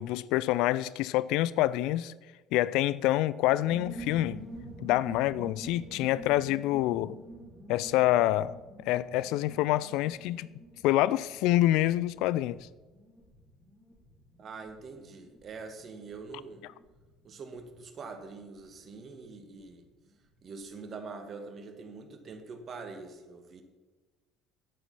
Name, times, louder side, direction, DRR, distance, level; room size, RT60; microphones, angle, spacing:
voice 1, 0.0-2.1 2.5-4.4 4.8-7.2 7.7-8.5 8.9-10.5 10.8-12.6, left 15 dB, 65° left, 0.3 m, -26 dB
sound 1, 3.4-19.7 20.0-20.1 20.3-20.7, right 1 dB, 10° right, 4.4 m, -49 dB
voice 2, 14.4-16.6 17.2-19.8 20.4-23.6, right 4 dB, 45° right, 1.9 m, -44 dB
10.0 x 9.0 x 5.6 m
hypercardioid pair, 60°, 0 cm